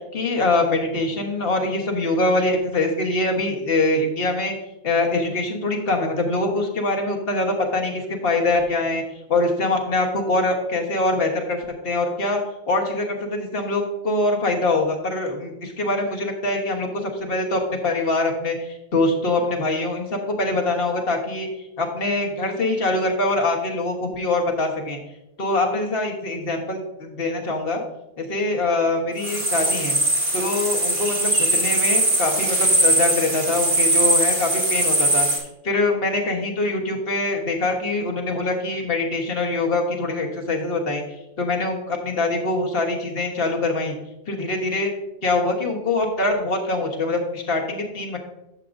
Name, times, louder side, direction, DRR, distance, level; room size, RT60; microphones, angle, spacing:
voice 1, 0.1-4.5 4.8-9.0 9.3-12.4 12.7-21.5 21.8-25.0 25.4-27.8 28.2-30.0 30.3-35.3 35.6-41.0 41.4-44.0 44.3-44.9 45.2-48.2, left 2 dB, 60° left, 1 dB, 1.5 m, -23 dB
sound 1, 29.2-35.4, right 1 dB, 50° right, 2.0 m, -21 dB
11.0 x 7.5 x 2.6 m, 0.91 s
omnidirectional pair, 1.1 m